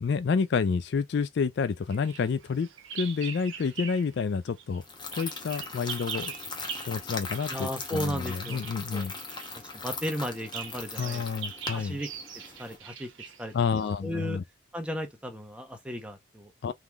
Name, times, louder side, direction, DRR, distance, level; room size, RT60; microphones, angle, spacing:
voice 1, 0.0-2.7 2.9-4.8 5.2-6.3 6.9-9.1 11.0-12.0 13.5-14.4 16.6-16.7, left 5 dB, 55° left, 0.3 m, -29 dB
Bird vocalization bird call bird song, 1.9-4.2 4.5-14.0, right 7 dB, 70° right, 0.9 m, -42 dB
sound 1, 4.8-12.8, left 4 dB, 20° left, 0.8 m, -40 dB
voice 2, 7.5-8.6 8.9-9.1 9.7-11.3 11.7-12.1 12.6-13.1 13.4-13.5 14.0-14.4 14.7-16.5, equal, 5° right, 0.9 m, -35 dB
3.7 x 3.2 x 3.4 m
head